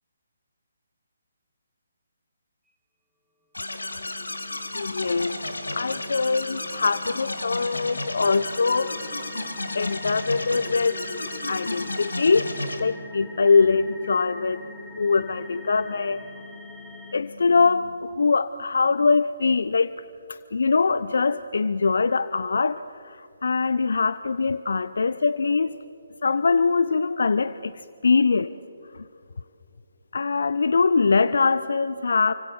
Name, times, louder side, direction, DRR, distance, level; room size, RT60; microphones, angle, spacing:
sound 1, 3.5-12.8, left 2 dB, 80° left, 2.7 m, -33 dB
voice 1, 3.6-20.0 20.3-25.8 26.2-28.5 28.9-29.0 30.1-32.3, left 4 dB, 65° left, 15 dB, 0.7 m, -23 dB
sound 2, 4.0-17.1, equal, 5° right, 1.8 m, -46 dB
29.5 x 25.0 x 7.1 m, 2.5 s
figure-of-eight pair, 140°, 0 cm